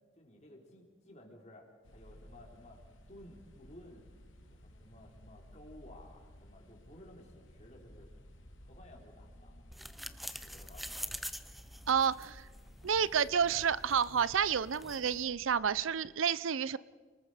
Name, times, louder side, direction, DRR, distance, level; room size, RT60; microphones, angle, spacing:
voice 1, 0.2-2.8 3.1-4.0 4.5-8.1 8.6-10.0 10.4-11.2 12.6-12.7, left 1 dB, 35° left, 0 dB, 4.0 m, -56 dB
sound 1, 1.8-16.1, equal, 75° left, 2.5 m, -56 dB
sound 2, 9.7-15.2, equal, ahead, 0.6 m, -46 dB
voice 2, 11.9-12.5 12.8-16.8, right 7 dB, 85° right, 18 dB, 0.6 m, -30 dB
30.0 x 19.0 x 5.0 m, 1.4 s
head